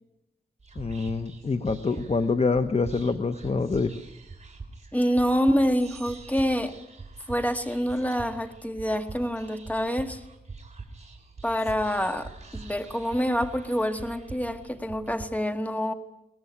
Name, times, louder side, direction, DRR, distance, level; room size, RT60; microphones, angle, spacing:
Whispering, 0.6-15.2, right 3 dB, 40° right, 3.7 m, -44 dB
voice 1, 0.8-3.9, left 4 dB, 40° left, 10 dB, 0.9 m, -26 dB
voice 2, 4.9-6.7 7.3-10.2 11.4-15.9, equal, 10° left, 8 dB, 1.7 m, -26 dB
sound 1, 5.8-7.4, right 5 dB, 75° right, 5.7 m, -54 dB
21.5 x 18.5 x 9.5 m, 0.90 s
wide cardioid pair, 100°, 16 cm